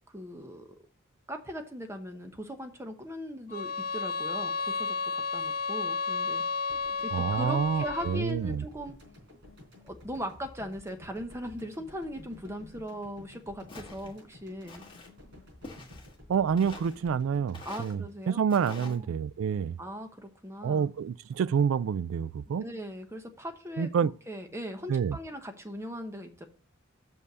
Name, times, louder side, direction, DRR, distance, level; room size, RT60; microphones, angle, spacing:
voice 1, 0.1-0.7 1.3-6.4 7.0-8.9 9.8-14.8 17.6-18.5 18.8-19.1 19.8-20.9 22.5-26.5, equal, 15° right, 0.9 m, -39 dB
sound 1, 3.5-8.3, left 4 dB, 45° left, 0.8 m, -32 dB
sound 2, 6.7-18.9, left 1 dB, 60° right, 4.1 m, -52 dB
voice 2, 7.1-8.6 16.3-19.8 20.6-22.6 23.8-24.1 24.9-25.2, right 7 dB, 80° right, 0.3 m, -28 dB
Walk footsteps, 13.7-14.1 14.7-15.1 15.6-16.2 16.6-17.0 17.5-17.9 18.5-19.0, left 3 dB, 25° left, 1.6 m, -46 dB
6.4 x 5.4 x 6.8 m
head